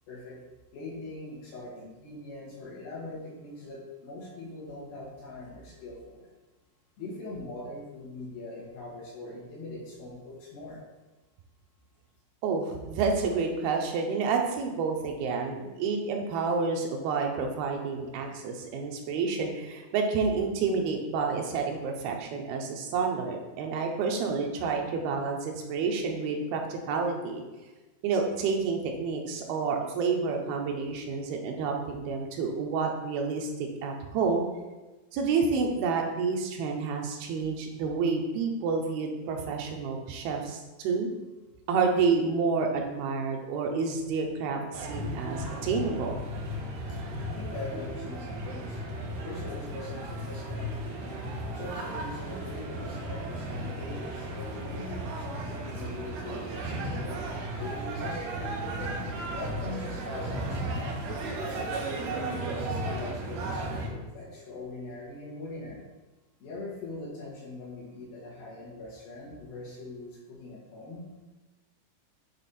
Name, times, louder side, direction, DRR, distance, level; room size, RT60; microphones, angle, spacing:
voice 1, 0.7-6.3 7.0-10.8 47.3-48.8 49.1-50.7 51.5-57.2 57.6-58.4 59.3-60.8 61.4-65.9 66.4-71.0, left 2 dB, 80° left, -5 dB, 3.7 m, -42 dB
voice 2, 12.4-27.4 28.0-34.5 35.1-41.1 41.7-46.2, right 4 dB, 90° right, 2 dB, 2.8 m, -29 dB
sound 1, 44.7-63.9, right 1 dB, 70° right, 2.2 m, -35 dB
8.7 x 3.6 x 4.2 m, 1.2 s
omnidirectional pair, 4.2 m